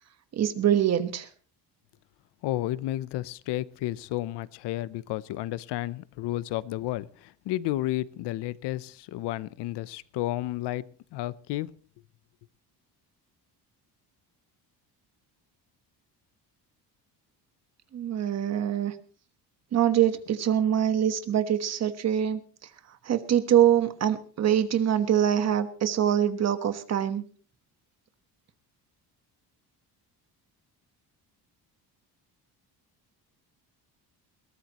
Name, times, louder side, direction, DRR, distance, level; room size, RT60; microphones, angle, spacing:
voice 1, 0.3-1.3 17.9-18.9 19.7-22.4 23.0-27.2, right 10 dB, 40° right, 1.3 m, -24 dB
voice 2, 2.4-10.9 11.1-11.7, left 15 dB, 85° left, 0.8 m, -32 dB
21.5 x 17.5 x 3.0 m
cardioid pair, 175°, 40 cm